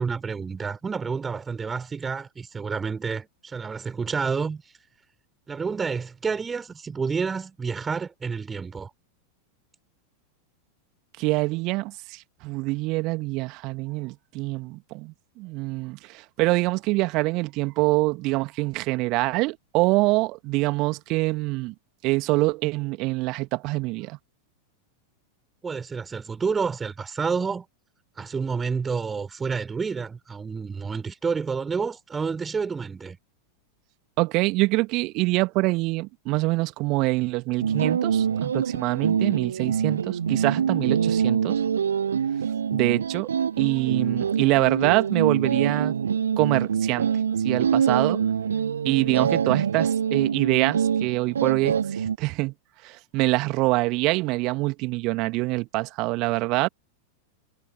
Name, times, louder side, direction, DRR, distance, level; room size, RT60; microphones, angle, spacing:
voice 1, 0.0-4.6 5.5-8.9 25.6-27.7 28.2-33.2, right 5 dB, 15° right, 5.6 m, -29 dB
voice 2, 11.2-21.7 22.0-24.2 34.2-41.6 42.7-43.3 43.6-45.9 46.4-47.1 47.4-48.2 48.8-52.5 52.8-56.7, right 23 dB, 40° right, 2.1 m, -25 dB
sound 1, 37.6-52.2, right 7 dB, 70° right, 0.7 m, -25 dB
figure-of-eight pair, 90°, 0 cm